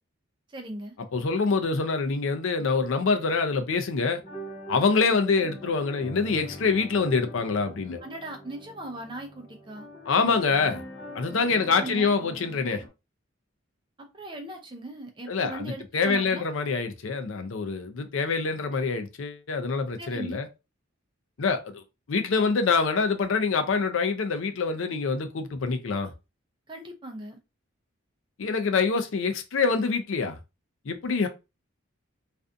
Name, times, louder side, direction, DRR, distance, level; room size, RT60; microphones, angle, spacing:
voice 1, 0.5-1.0 8.0-9.9 11.6-12.1 14.0-16.4 20.0-20.4 26.7-27.4, right 1 dB, 25° right, 0.5 m, -39 dB
voice 2, 1.1-4.2 4.7-8.0 10.1-10.8 11.1-12.8 15.3-20.5 21.4-21.8 22.1-26.1 28.4-30.4 30.9-31.3, left 4 dB, 70° left, 0.5 m, -25 dB
sound 1, 4.2-12.9, equal, 30° left, 0.9 m, -43 dB
2.5 x 2.3 x 2.5 m
head